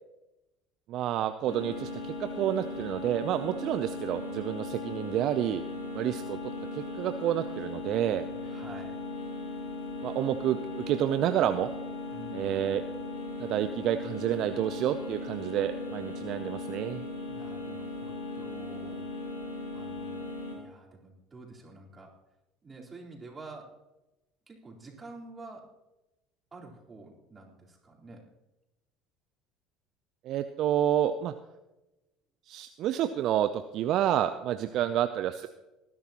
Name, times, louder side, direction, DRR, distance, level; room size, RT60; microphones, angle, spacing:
voice 1, 0.9-5.6 5.9-6.4 6.7-8.2 10.0-11.7 12.3-12.8 13.4-17.0 30.2-31.3 32.5-35.5, right 11 dB, 55° right, 10 dB, 0.5 m, -29 dB
sound 1, 1.5-20.6, left 3 dB, 85° left, 2.8 m, -38 dB
voice 2, 8.4-9.0 12.1-12.6 17.3-19.1 19.7-20.3 20.5-22.1 22.6-23.7 24.5-25.7 26.5-28.2 34.7-34.9, right 3 dB, 25° right, -3 dB, 4.0 m, -48 dB
19.5 x 12.0 x 3.0 m, 1.0 s
hypercardioid pair, 65°, 0 cm